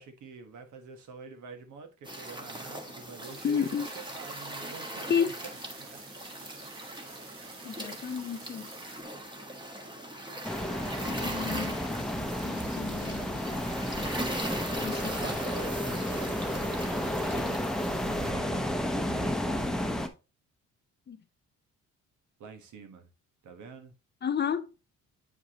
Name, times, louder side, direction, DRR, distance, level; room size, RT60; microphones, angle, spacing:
voice 1, 0.0-5.3 5.8-6.0 15.0-18.7 19.0-19.9 22.4-23.1 23.4-23.9, right 4 dB, 75° right, 1.4 m, -46 dB
sound 1, 2.0-18.3, right 1 dB, 15° right, 1.3 m, -40 dB
sound 2, 3.2-9.0, right 5 dB, 45° right, 1.2 m, -51 dB
voice 2, 3.4-3.9 5.1-5.4 7.6-8.7 11.1-11.7 12.4-13.6 14.7-15.1 21.1-21.2 24.2-24.7, left 7 dB, 35° left, 0.5 m, -31 dB
sound 3, 10.4-20.1, left 1 dB, ahead, 0.8 m, -32 dB
8.2 x 4.7 x 2.9 m
cardioid pair, 90°, 30 cm